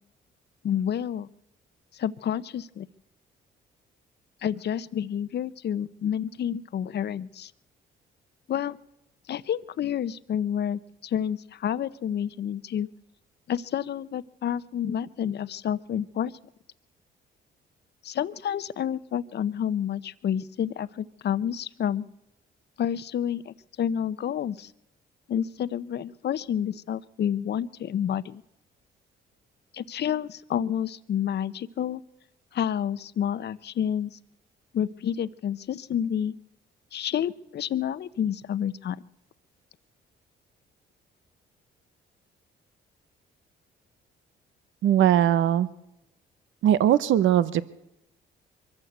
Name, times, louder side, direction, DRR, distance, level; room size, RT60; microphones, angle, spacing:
voice 1, 0.6-1.3 1.9-2.9 4.4-7.5 8.5-8.8 9.3-12.9 13.5-16.3 18.0-22.0 22.8-24.7 25.3-28.4 29.7-32.0 32.5-34.1 34.7-36.4 36.9-39.0, left 9 dB, 55° left, 16 dB, 0.8 m, -29 dB
voice 2, 44.8-45.7 46.6-47.6, right 11 dB, 75° right, 16 dB, 0.9 m, -20 dB
23.5 x 14.0 x 8.0 m, 0.86 s
cardioid pair, 90°, 20 cm